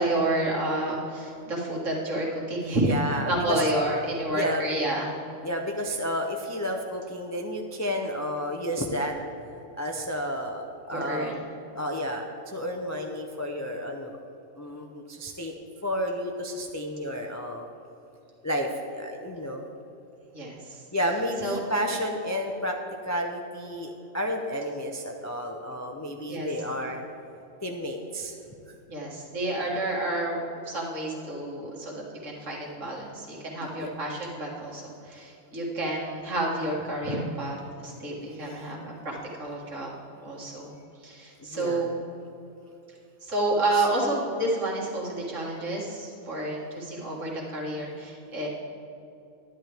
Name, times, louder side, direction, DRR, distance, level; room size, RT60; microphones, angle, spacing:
voice 1, 0.0-2.9 3.3-5.1 10.9-11.4 20.3-20.8 21.4-21.6 26.3-26.5 28.9-37.6 37.8-40.7 41.0-41.9 43.2-48.5, right 1 dB, 70° right, -4 dB, 2.2 m, -30 dB
voice 2, 2.8-3.6 4.3-4.6 5.4-9.2 9.7-11.4 11.7-14.2 14.6-15.5 15.8-17.7 18.4-19.7 20.9-22.8 23.0-27.0 27.6-28.4 28.7-28.8 33.6-33.9 38.2-38.3 41.4-41.9 43.7-43.9, equal, 25° left, 2 dB, 0.3 m, -31 dB
10.5 x 10.5 x 3.4 m, 2.8 s
omnidirectional pair, 1.4 m